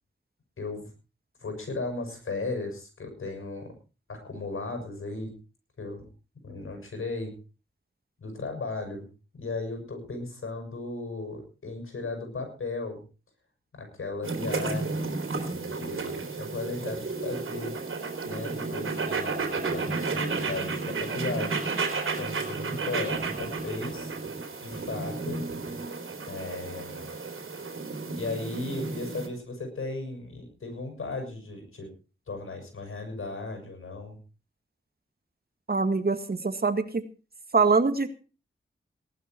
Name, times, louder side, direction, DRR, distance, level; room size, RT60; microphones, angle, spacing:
voice 1, 0.6-0.9 1.4-3.7 4.1-5.3 5.8-6.1 6.4-7.3 8.2-9.1 9.3-13.0 13.7-17.7 18.2-21.6 22.2-24.1 24.6-25.5 26.3-27.1 28.1-31.9 32.3-34.2, left 3 dB, 85° left, 4 dB, 6.7 m, -36 dB
sound 1, 14.2-29.3, right 4 dB, 85° right, 3.4 m, -32 dB
voice 2, 35.7-37.0 37.5-38.1, right 4 dB, 50° right, 9 dB, 2.0 m, -24 dB
18.5 x 11.5 x 4.5 m, 0.35 s
cardioid pair, 60°, 21 cm